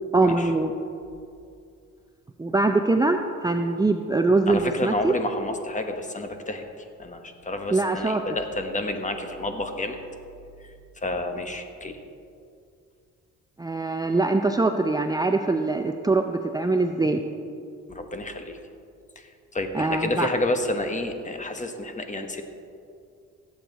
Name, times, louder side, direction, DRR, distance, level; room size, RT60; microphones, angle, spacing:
voice 1, 0.1-0.7 2.4-5.1 7.7-8.2 13.6-17.2 19.7-20.3, right 3 dB, 15° right, 5 dB, 0.5 m, -23 dB
voice 2, 4.5-10.0 10.6-12.0 17.9-18.6 19.1-22.4, left 1 dB, 25° left, 6 dB, 1.2 m, -30 dB
17.0 x 8.1 x 4.1 m, 2.4 s
cardioid pair, 90°, 30 cm